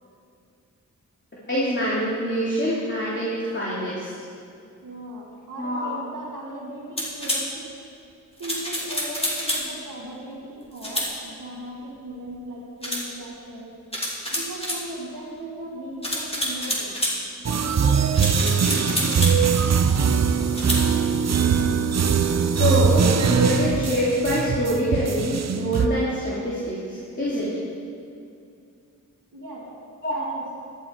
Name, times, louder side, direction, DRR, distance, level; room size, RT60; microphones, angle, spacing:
voice 1, 1.5-4.1 5.6-5.9 22.6-27.5 30.0-30.2, equal, 35° left, -8 dB, 3.1 m, -25 dB
voice 2, 4.8-7.7 8.4-13.8 14.3-17.0 17.4-20.7 29.3-29.7 30.1-30.5, right 1 dB, 75° right, -5 dB, 2.2 m, -38 dB
sound 1, 7.0-7.4 8.4-9.7 10.8-11.1 12.8-13.1 13.9-14.8 16.0-17.2 18.1-19.4 20.5-20.8, left 1 dB, 15° left, 2.9 m, -27 dB
sound 2, 17.4-25.9, right 6 dB, 50° right, 0.7 m, -21 dB
13.0 x 9.4 x 4.7 m, 2.4 s
cardioid pair, 50°, 33 cm